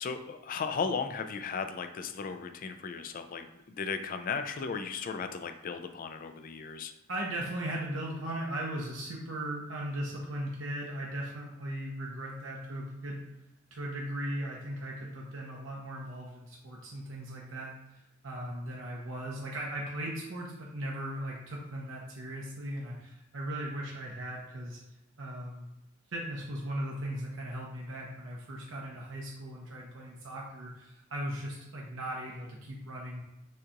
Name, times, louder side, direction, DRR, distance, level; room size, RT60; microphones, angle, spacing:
voice 1, 0.0-3.5 3.8-6.9, left 5 dB, 40° left, 7 dB, 0.3 m, -35 dB
voice 2, 7.1-13.2 13.7-18.0 18.2-24.8 25.2-25.7 26.1-33.2, right 1 dB, 65° right, -3 dB, 0.7 m, -38 dB
6.4 x 2.4 x 2.9 m, 0.92 s
head